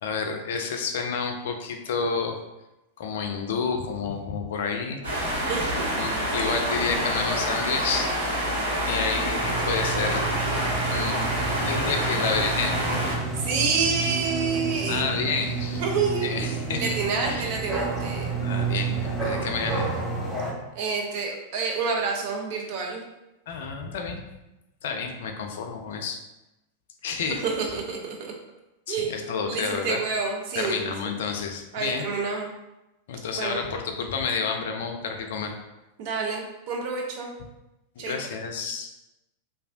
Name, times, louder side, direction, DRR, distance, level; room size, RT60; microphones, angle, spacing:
voice 1, 0.0-2.4 3.0-5.0 6.0-8.4 8.8-10.2 10.9-12.8 14.9-15.8 16.2-16.9 17.2-17.4 18.4-19.9 23.5-24.2 24.8-26.2 27.0-27.4 28.9-30.0 30.6-32.0 33.1-35.5 38.0-38.9, left 5 dB, 55° left, 4 dB, 0.3 m, -30 dB
sound 1, 5.0-13.1, equal, 70° right, 1.2 m, -27 dB
voice 2, 5.4-5.9 6.4-6.5 13.3-15.2 15.8-18.3 20.7-23.0 27.3-28.3 28.9-29.2 29.5-31.1 31.7-32.5 33.3-33.6 36.0-37.3 38.0-38.2, right 4 dB, 45° right, 0 dB, 0.5 m, -28 dB
sound 2, 9.4-20.5, right 4 dB, 10° right, 0.7 m, -30 dB
3.1 x 2.3 x 2.5 m, 0.97 s
figure-of-eight pair, 90°, 0 cm